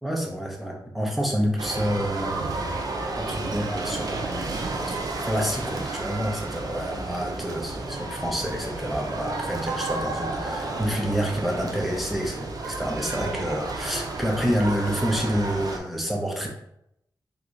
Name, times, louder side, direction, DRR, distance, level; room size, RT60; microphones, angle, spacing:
voice 1, 0.0-2.4 3.2-5.0 5.3-16.5, equal, ahead, -1 dB, 0.7 m, -28 dB
sound 1, 1.6-15.8, right 2 dB, 50° right, 0.6 m, -32 dB
3.8 x 2.7 x 4.6 m, 0.77 s
wide cardioid pair, 175°, 8 cm